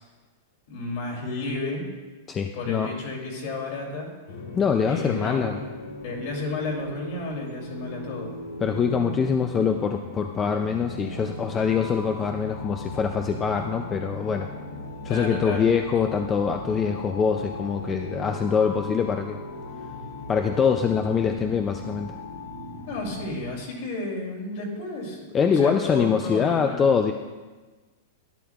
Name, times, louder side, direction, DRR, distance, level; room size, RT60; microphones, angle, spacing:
voice 1, 0.7-1.8 2.5-4.1 4.9-5.5 6.0-8.3 15.1-15.7 22.9-26.8, left 3 dB, 50° left, 0 dB, 2.7 m, -32 dB
voice 2, 2.3-2.9 4.6-5.6 8.6-14.5 15.0-19.4 20.3-22.2 25.3-27.1, left 6 dB, 15° left, 5 dB, 0.3 m, -24 dB
sound 1, 4.3-23.3, left 1 dB, 85° left, 1.5 m, -37 dB
12.0 x 11.0 x 2.3 m, 1.3 s
supercardioid pair, 170°, 0 cm